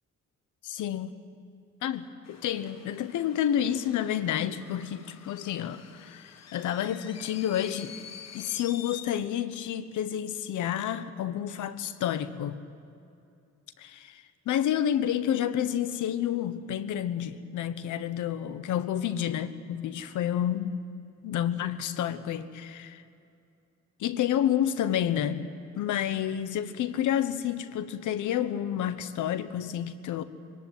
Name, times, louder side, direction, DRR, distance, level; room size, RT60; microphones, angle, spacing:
voice 1, 0.6-1.2 1.8-8.0 8.3-12.6 13.8-20.8 21.2-23.0 24.0-25.5 25.8-30.2, left 10 dB, 80° left, 13 dB, 1.1 m, -30 dB
sound 1, 2.2-9.1, left 8 dB, 60° left, 1.4 m, -48 dB
21.5 x 18.0 x 9.2 m, 2.6 s
cardioid pair, 90°, 30 cm